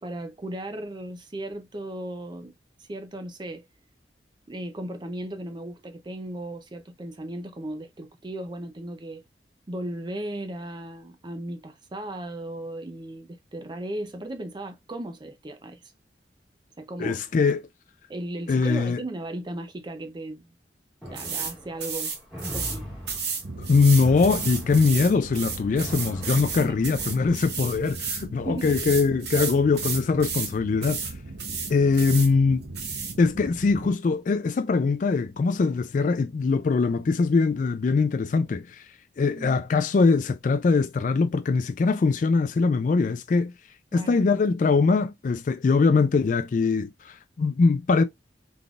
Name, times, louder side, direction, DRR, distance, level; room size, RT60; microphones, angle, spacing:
voice 1, 0.0-2.5 2.8-3.6 4.5-9.2 9.7-15.9 16.8-17.2 18.1-20.5 21.1-22.1 22.5-22.9 26.6-26.8 28.4-28.8 39.4-39.6 43.9-44.2, right 1 dB, 25° right, 0.5 m, -36 dB
voice 2, 17.0-17.7 18.5-19.0 23.6-31.1 31.7-32.7 33.2-38.9 39.2-43.5 43.9-48.0, left 4 dB, 45° left, 0.3 m, -22 dB
sound 1, 21.0-27.4, left 1 dB, ahead, 2.0 m, -41 dB
sound 2, 21.2-21.5 21.8-22.8 23.1-28.3 28.6-30.5 30.8-31.1 31.4-32.3 32.8-33.1, right 5 dB, 65° right, 1.3 m, -32 dB
sound 3, 23.4-33.9, right 2 dB, 80° right, 0.7 m, -39 dB
3.9 x 3.5 x 2.4 m
head